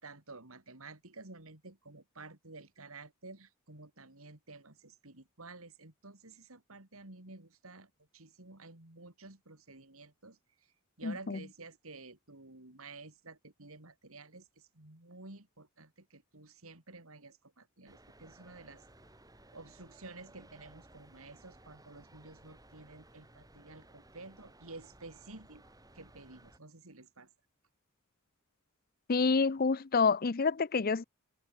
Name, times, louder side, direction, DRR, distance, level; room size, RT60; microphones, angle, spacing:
voice 1, 0.0-10.4 11.0-18.8 19.5-27.3, right 3 dB, 80° right, 3.4 m, -52 dB
voice 2, 11.0-11.4 29.1-31.0, left 4 dB, 45° left, 0.6 m, -28 dB
sound 1, 17.9-26.6, right 1 dB, 15° right, 5.8 m, -59 dB
head